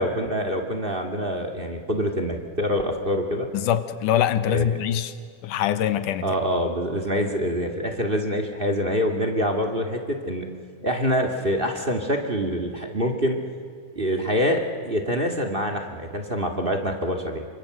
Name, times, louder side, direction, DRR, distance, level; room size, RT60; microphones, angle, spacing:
voice 1, 0.0-3.5 4.5-4.7 6.2-10.4 10.8-13.4 13.9-17.5, equal, 20° right, 5 dB, 1.6 m, -25 dB
voice 2, 3.5-5.1 5.4-6.3, left 10 dB, 75° left, 12 dB, 2.6 m, -23 dB
28.5 x 25.0 x 7.8 m, 2.2 s
omnidirectional pair, 3.8 m